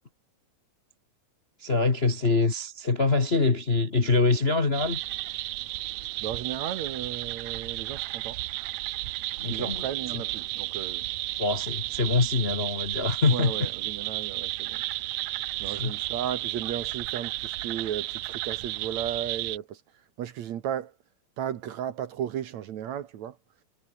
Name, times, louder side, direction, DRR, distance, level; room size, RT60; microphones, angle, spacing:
voice 1, 1.6-5.0 9.4-9.8 10.1-10.2 11.4-13.5 15.6-15.9, left 3 dB, 30° left, 1.1 m, -24 dB
sound 1, 4.7-19.6, right 18 dB, 90° right, 1.6 m, -33 dB
voice 2, 6.2-8.4 9.5-11.0 13.2-14.8 15.6-19.8 20.2-20.9 21.4-23.4, right 10 dB, 65° right, 2.4 m, -34 dB
omnidirectional pair, 3.8 m